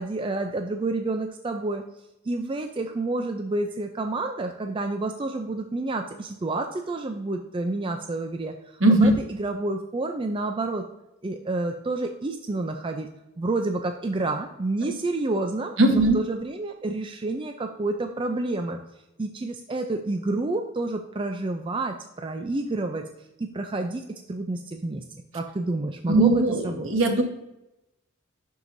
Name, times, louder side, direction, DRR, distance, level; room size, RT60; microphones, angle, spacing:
voice 1, 0.0-1.8 2.2-10.8 11.2-13.1 13.4-18.8 19.2-23.0 23.4-25.0 25.3-26.9, right 2 dB, 25° right, 5 dB, 0.4 m, -29 dB
voice 2, 8.8-9.1 15.8-16.2 26.1-27.2, right 2 dB, 65° right, 4 dB, 1.2 m, -19 dB
11.0 x 4.7 x 2.6 m, 0.91 s
head